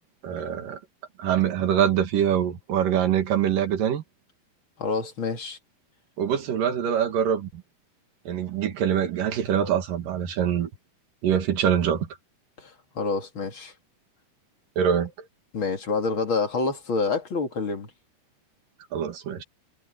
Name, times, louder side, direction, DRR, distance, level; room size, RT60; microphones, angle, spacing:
voice 1, 0.2-0.8 1.2-4.0 6.2-7.6 8.3-10.7 11.2-12.1 14.8-15.1 18.9-19.4, right 9 dB, 60° right, 3.3 m, -24 dB
voice 2, 4.8-5.6 12.6-13.7 15.5-17.9, left 4 dB, 35° left, 2.6 m, -27 dB
omnidirectional pair, 4.6 m